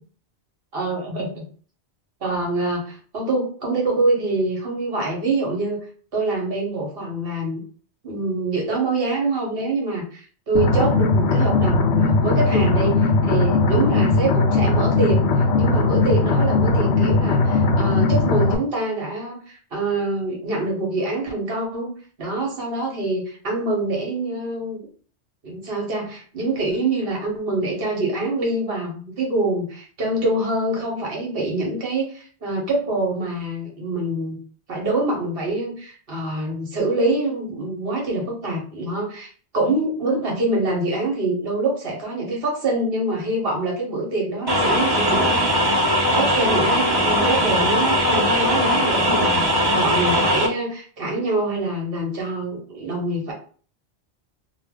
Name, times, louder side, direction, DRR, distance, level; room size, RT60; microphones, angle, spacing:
voice 1, 0.7-1.5 2.2-5.8 6.1-7.6 8.0-15.2 15.6-21.9 22.2-24.8 25.4-34.4 34.7-45.8 46.1-53.3, right 2 dB, 60° right, -1 dB, 1.2 m, -25 dB
sound 1, 10.6-18.6, left 3 dB, 80° left, 0.9 m, -18 dB
sound 2, 44.5-50.5, equal, 25° right, 0.6 m, -19 dB
2.7 x 2.2 x 3.5 m, 0.43 s
omnidirectional pair, 1.1 m